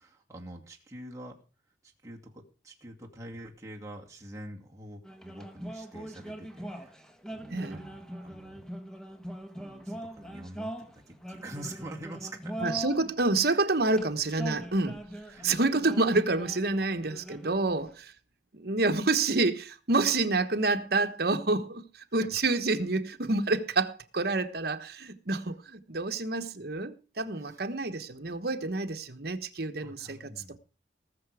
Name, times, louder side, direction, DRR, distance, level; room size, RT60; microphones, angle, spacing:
voice 1, 0.0-1.4 1.8-7.0 7.3-8.7 9.5-12.8 13.5-14.0 15.3-15.5 25.4-25.5 27.4-27.6 29.8-30.6, right 1 dB, 15° right, 2.4 m, -46 dB
sound 1, 5.0-13.1 13.8-17.9, right 1 dB, 5° left, 1.2 m, -41 dB
voice 2, 7.5-7.8 12.6-15.0 15.4-18.1 18.5-30.3, right 3 dB, 60° right, 1.3 m, -28 dB
19.5 x 6.9 x 4.9 m
head